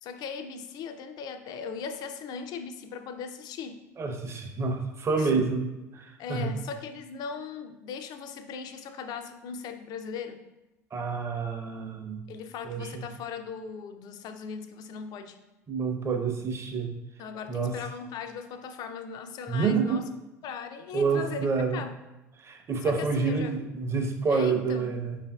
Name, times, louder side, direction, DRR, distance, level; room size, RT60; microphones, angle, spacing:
voice 1, 0.0-3.8 5.2-5.5 6.2-10.5 12.3-15.4 17.2-20.1 20.4-22.0 22.8-23.6 24.3-24.9, left 6 dB, 50° left, 8 dB, 0.4 m, -39 dB
voice 2, 4.0-6.5 10.9-12.2 12.6-13.0 15.7-16.9 17.5-17.7 19.5-20.0 20.9-21.8 22.4-25.2, right 4 dB, 30° right, 4 dB, 0.6 m, -28 dB
5.0 x 2.5 x 2.2 m, 1.0 s
hypercardioid pair, 70°, 9 cm